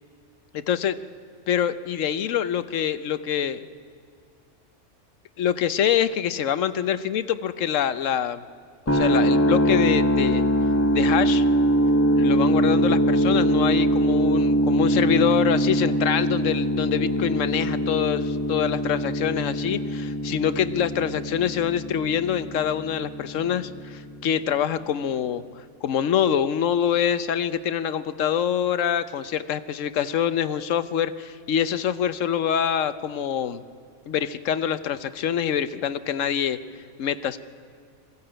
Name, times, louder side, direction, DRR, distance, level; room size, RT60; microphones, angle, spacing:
voice 1, 0.5-1.0 1.5-3.6 5.4-8.4 8.9-10.4 10.9-11.5 12.1-25.4 25.8-33.6 34.1-36.6 37.0-37.4, left 9 dB, 85° left, 13 dB, 1.2 m, -25 dB
sound 1, 8.9-24.8, equal, 15° left, 0.6 m, -23 dB
21.5 x 15.5 x 8.8 m, 2.2 s
omnidirectional pair, 1.3 m